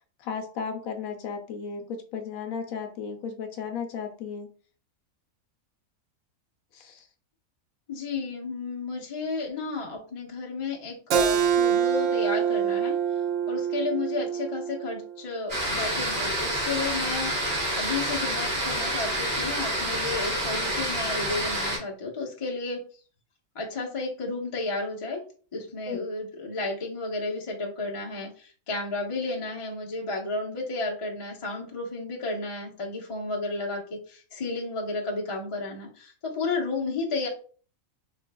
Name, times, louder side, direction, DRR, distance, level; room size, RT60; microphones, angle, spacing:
voice 1, 0.2-4.5 6.7-7.1 25.9-26.0, left 6 dB, 75° left, 5 dB, 1.0 m, -35 dB
voice 2, 7.9-12.9 13.5-22.8 23.5-25.2 25.5-37.3, left 3 dB, 30° left, -2 dB, 0.7 m, -32 dB
Keyboard (musical), 11.1-16.3, right 8 dB, 65° right, 0.9 m, -26 dB
sound 1, 15.5-21.8, right 1 dB, 35° right, 1.6 m, -28 dB
4.2 x 3.0 x 2.2 m, 0.41 s
omnidirectional pair, 1.5 m